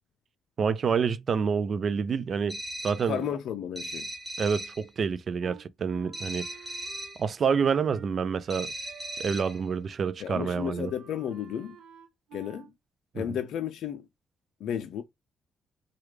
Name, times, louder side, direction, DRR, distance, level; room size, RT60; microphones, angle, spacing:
voice 1, 0.6-3.2 4.4-6.4 7.2-8.7 9.2-10.9 13.2-13.3, right 6 dB, 50° right, 0.4 m, -28 dB
sound 1, 2.5-3.1 3.8-4.8 6.1-7.2 8.5-9.6, right 1 dB, 5° right, 1.1 m, -38 dB
voice 2, 3.0-4.1 10.2-11.8 12.3-12.7 13.1-14.1 14.6-15.0, left 9 dB, 75° left, 0.4 m, -33 dB
Wind instrument woodwind instrument, 5.4-9.7 9.9-10.1 10.4-12.7, right 8 dB, 85° right, 0.9 m, -52 dB
3.1 x 2.3 x 3.2 m
cardioid pair, 90°, 0 cm